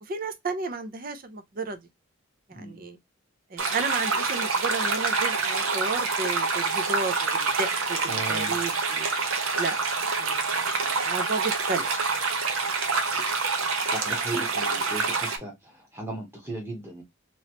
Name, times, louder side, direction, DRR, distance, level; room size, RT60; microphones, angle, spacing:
voice 1, 0.0-1.8 2.5-3.0 3.5-9.1 9.6-9.8 10.2-10.7 11.1-11.9 13.8-13.9, right 3 dB, 40° right, 0.5 m, -33 dB
sound 1, 3.6-15.4, right 4 dB, 75° right, 0.8 m, -27 dB
voice 2, 8.1-8.6 13.8-17.0, right 2 dB, 10° right, 1.1 m, -36 dB
3.0 x 3.0 x 2.8 m
head